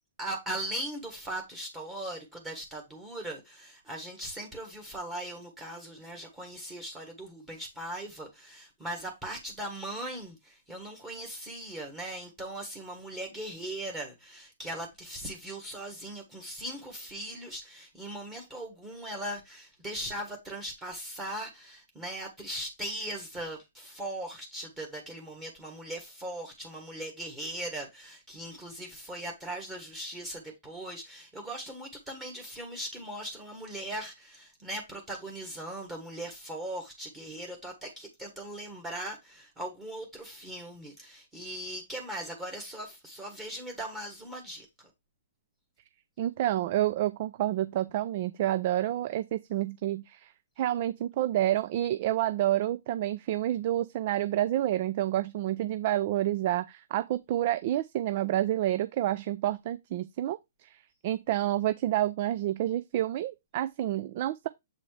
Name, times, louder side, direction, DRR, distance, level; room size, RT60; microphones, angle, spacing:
voice 1, 0.2-44.9, right 1 dB, 10° right, 1.4 m, -39 dB
voice 2, 46.2-64.5, right 13 dB, 40° right, 0.4 m, -29 dB
7.7 x 4.1 x 3.2 m
hypercardioid pair, 160°, 0 cm